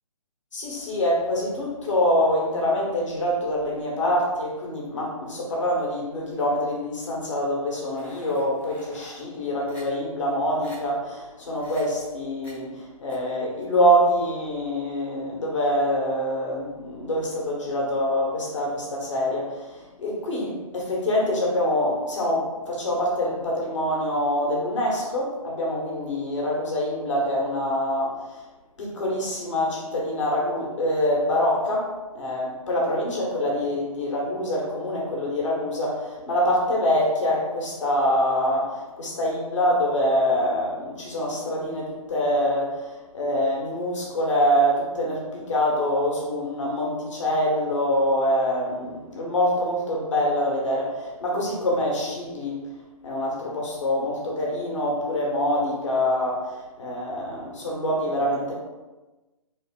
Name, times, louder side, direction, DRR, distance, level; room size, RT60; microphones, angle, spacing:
voice 1, 0.5-28.3 28.8-52.6 53.0-58.5, equal, 55° left, -3 dB, 1.4 m, -25 dB
sound 1, 7.9-9.2 9.7-9.8 10.3-10.4 10.6-10.8 11.6-11.8 12.4-12.5 13.1-13.2, equal, 10° left, 0.7 m, -47 dB
3.8 x 2.8 x 3.7 m, 1.1 s
figure-of-eight pair, 135°, 18 cm